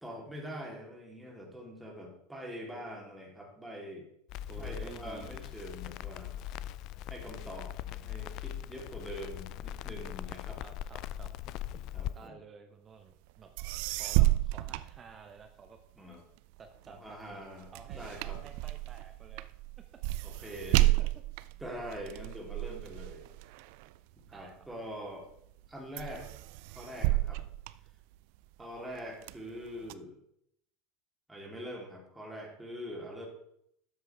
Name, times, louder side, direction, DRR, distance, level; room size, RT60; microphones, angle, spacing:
voice 1, 0.0-4.1 4.6-6.3 7.1-10.6 11.9-12.4 16.0-16.2 16.9-18.4 20.2-21.0 21.6-23.3 24.3-25.3 25.7-26.3 26.7-27.4 28.6-30.2 31.3-33.3, equal, 5° right, -2 dB, 3.3 m, -44 dB
Crackle, 4.3-12.1, left 12 dB, 50° left, 0.4 m, -40 dB
voice 2, 4.5-5.5 10.6-11.3 12.1-13.5 14.0-15.8 16.6-17.2 17.7-19.5 19.8-19.9 20.4-20.5 21.0-21.2 24.3-24.7 28.6-28.8, right 5 dB, 30° right, 7 dB, 0.9 m, -51 dB
sound 1, 13.3-13.4 13.6-15.7 16.1-24.8 25.3-25.7 26.0-28.5 28.9-29.9, right 17 dB, 55° right, 0.4 m, -32 dB
12.5 x 8.0 x 3.5 m, 0.72 s
figure-of-eight pair, 75°, 0 cm